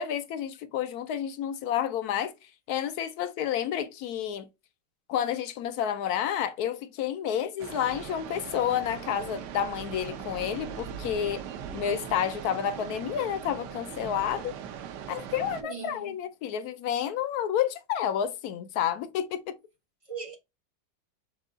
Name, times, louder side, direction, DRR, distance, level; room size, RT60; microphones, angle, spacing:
voice 1, 0.0-2.3 2.7-4.5 5.1-11.4 11.7-14.5 15.1-19.6, left 9 dB, 70° left, 1.0 m, -30 dB
sound 1, 7.6-15.6, right 8 dB, 75° right, 1.2 m, -40 dB
voice 2, 15.6-16.1 20.1-20.4, right 5 dB, 45° right, 0.4 m, -39 dB
6.4 x 2.3 x 3.6 m
omnidirectional pair, 1.9 m